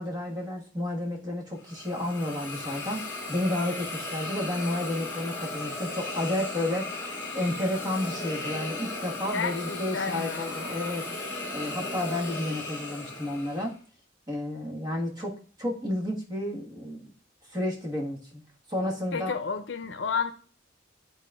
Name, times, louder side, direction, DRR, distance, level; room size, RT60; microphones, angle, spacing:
voice 1, 0.0-3.0 3.3-11.1 11.5-13.7 14.3-17.1 17.5-18.4 18.7-19.3, left 1 dB, 20° right, -2 dB, 1.5 m, -31 dB
Hiss, 1.6-13.7, left 2 dB, 15° left, 1.4 m, -36 dB
voice 2, 9.3-10.9 19.1-20.3, left 5 dB, 70° left, 9 dB, 0.6 m, -32 dB
11.0 x 4.2 x 2.4 m, 0.40 s
head